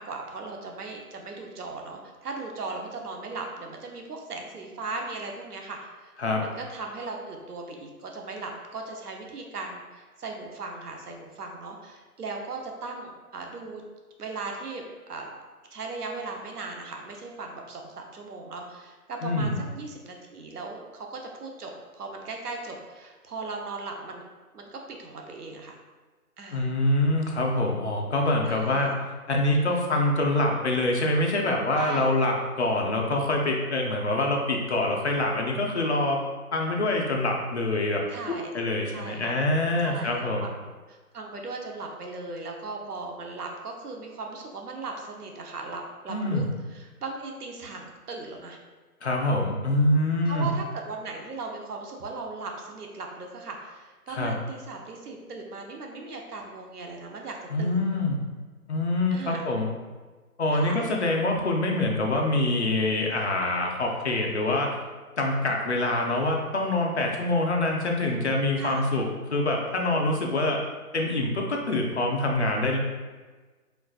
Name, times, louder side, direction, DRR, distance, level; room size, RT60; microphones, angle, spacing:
voice 1, 0.0-6.1 6.4-13.8 14.2-15.3 15.7-24.2 24.5-25.7 26.4-26.7 28.4-29.0 31.7-32.1 38.1-38.5 38.9-39.3 39.8-46.4 46.7-48.6 50.3-57.8 59.1-59.4 60.5-60.8 68.6-68.8, right 3 dB, 80° right, 2 dB, 0.8 m, -38 dB
voice 2, 19.2-19.6 26.5-28.9 29.3-36.2 36.5-38.0 38.3-40.4 46.1-46.4 49.0-50.5 54.1-54.3 57.5-58.2 58.7-59.7 60.4-64.8 65.2-70.6 70.9-72.8, left 2 dB, 50° left, 0 dB, 0.5 m, -25 dB
4.4 x 2.4 x 2.3 m, 1.3 s
hypercardioid pair, 170°, 46 cm